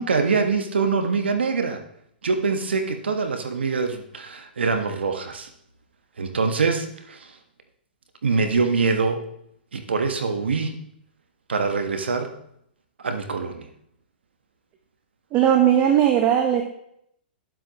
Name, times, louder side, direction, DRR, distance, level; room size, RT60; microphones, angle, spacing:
voice 1, 0.0-1.8 2.2-5.5 6.2-7.3 8.2-9.2 9.7-10.7 11.5-12.3 13.0-13.7, right 4 dB, 90° right, 6 dB, 1.3 m, -24 dB
voice 2, 15.3-16.6, right 10 dB, 30° right, 4 dB, 1.0 m, -18 dB
11.5 x 7.6 x 3.0 m, 0.72 s
hypercardioid pair, 130°, 6 cm